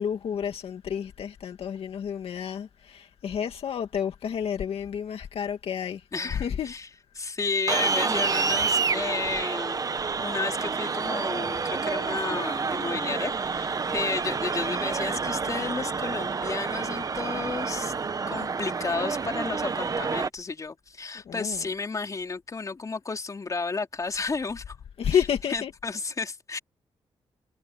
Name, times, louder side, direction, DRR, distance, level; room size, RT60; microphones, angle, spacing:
voice 1, 0.0-6.0 6.3-6.7 21.3-21.7 25.0-25.7, left 8 dB, 70° left, 2.2 m, -30 dB
voice 2, 6.1-6.9 7.2-9.8 10.2-17.9 18.3-24.8 25.1-26.6, left 4 dB, 35° left, 4.3 m, -32 dB
sound 1, 7.7-20.3, right 5 dB, 40° right, 1.0 m, -29 dB
cardioid pair, 100°, 10 cm